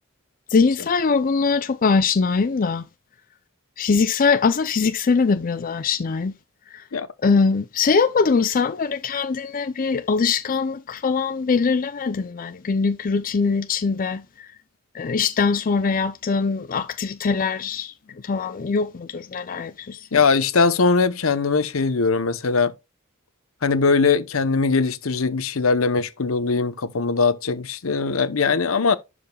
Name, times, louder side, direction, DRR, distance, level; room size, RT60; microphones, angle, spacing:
voice 1, 0.5-2.8 3.8-6.3 6.7-6.8 7.2-14.5 14.9-17.9 18.2-20.2, left 5 dB, 40° left, 0.5 m, -22 dB
voice 2, 20.1-22.7 23.6-29.0, left 4 dB, 75° left, 0.9 m, -20 dB
12.0 x 5.0 x 2.3 m
head